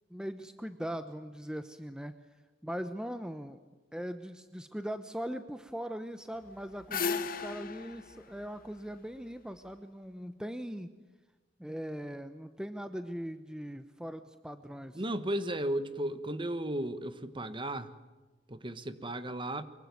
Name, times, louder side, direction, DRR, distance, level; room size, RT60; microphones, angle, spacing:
voice 1, 0.1-2.1 2.6-3.6 3.9-10.9 11.6-15.0, equal, 5° right, 0.9 m, -40 dB
sound 1, 6.4-9.6, left 5 dB, 50° left, 1.5 m, -36 dB
voice 2, 14.9-17.9 18.5-19.6, right 1 dB, 25° right, 1.4 m, -35 dB
24.5 x 23.0 x 9.5 m
head